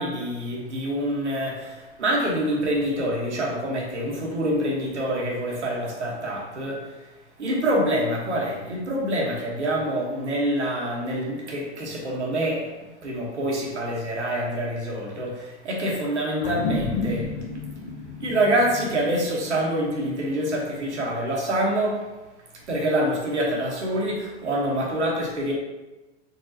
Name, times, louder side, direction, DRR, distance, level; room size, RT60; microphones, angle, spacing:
voice 1, 0.0-6.9 7.4-17.4 18.2-22.1 22.5-25.5, right 1 dB, 90° right, -2 dB, 1.3 m, -26 dB
sound 1, 16.4-21.2, left 3 dB, 65° left, 0.9 m, -32 dB
4.2 x 4.0 x 2.8 m, 1.1 s
hypercardioid pair, 100°, 34 cm